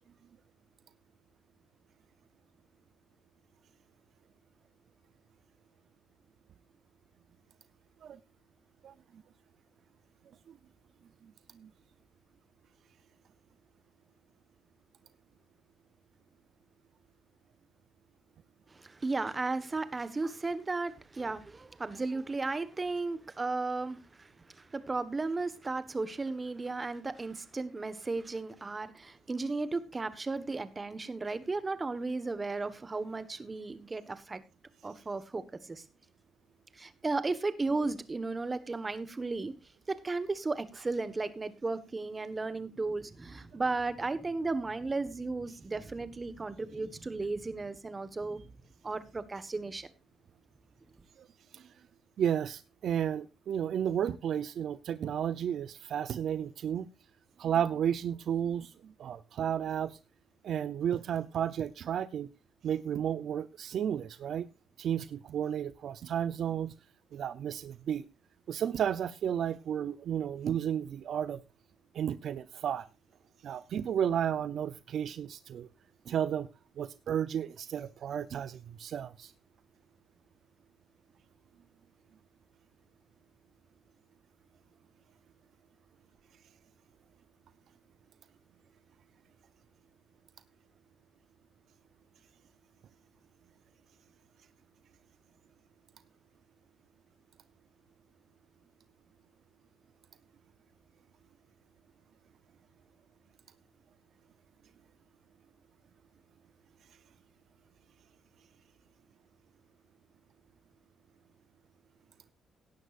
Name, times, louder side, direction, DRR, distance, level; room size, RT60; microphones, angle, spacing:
voice 1, 18.7-34.4 34.8-35.8 36.7-39.5 39.9-48.4 48.8-49.9, right 3 dB, 25° right, 1.4 m, -35 dB
voice 2, 52.2-56.9 57.4-60.0 60.4-62.3 62.6-64.5 64.8-66.7 67.1-68.1 68.5-71.4 71.9-72.8 73.4-75.7 76.1-76.5 76.8-79.3, right 9 dB, 65° right, 0.6 m, -32 dB
17.0 x 11.0 x 2.5 m
cardioid pair, 90°, 0 cm